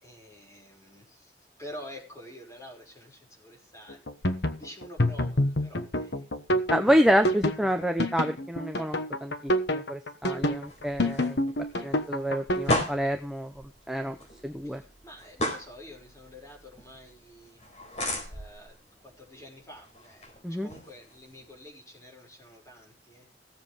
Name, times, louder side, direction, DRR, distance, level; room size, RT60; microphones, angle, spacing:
voice 1, 0.0-6.3 14.0-17.7 18.3-23.3, left 1 dB, 15° left, 0 dB, 5.6 m, -48 dB
sound 1, 3.9-12.8, left 1 dB, 75° left, 1.3 m, -27 dB
voice 2, 6.7-11.5 11.8-13.5 13.9-14.1 14.4-14.8 20.4-20.7, equal, ahead, 5 dB, 0.8 m, -27 dB
sound 2, 10.3-21.6, left 1 dB, 35° left, 4.4 m, -37 dB
17.0 x 7.6 x 5.0 m, 0.30 s
head